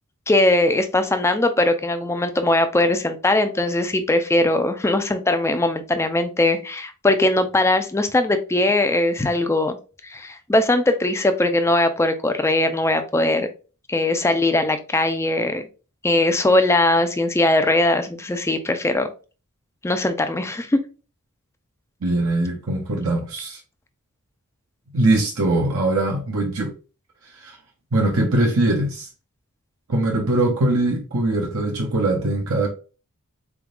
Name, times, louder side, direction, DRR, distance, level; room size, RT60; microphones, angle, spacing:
voice 1, 0.3-9.8 10.0-13.5 13.9-15.7 16.0-19.1 19.8-20.8, left 2 dB, 10° left, 0.4 m, -20 dB
voice 2, 22.0-23.6 24.9-26.7 27.4-27.6 27.9-29.1 29.9-32.7, right 2 dB, 65° right, 0.7 m, -21 dB
3.8 x 3.6 x 2.4 m
head